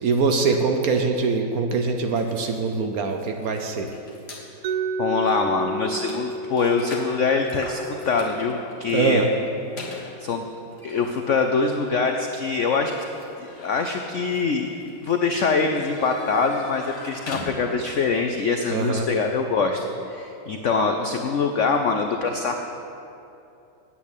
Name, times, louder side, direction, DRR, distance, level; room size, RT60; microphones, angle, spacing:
voice 1, 0.0-3.9 8.9-9.3 18.7-19.1, right 4 dB, 60° right, 4 dB, 1.1 m, -23 dB
sound 1, 2.1-4.5 5.2-5.3 5.6-18.0, left 2 dB, 35° left, 1.8 m, -42 dB
Mallet percussion, 4.6-10.5, right 2 dB, 85° right, 0.8 m, -33 dB
voice 2, 5.0-7.8 8.1-9.3 10.2-10.5 10.8-12.9 13.4-14.7 15.0-22.5, left 4 dB, 85° left, 5 dB, 0.6 m, -24 dB
9.5 x 8.6 x 8.3 m, 2.7 s
omnidirectional pair, 2.1 m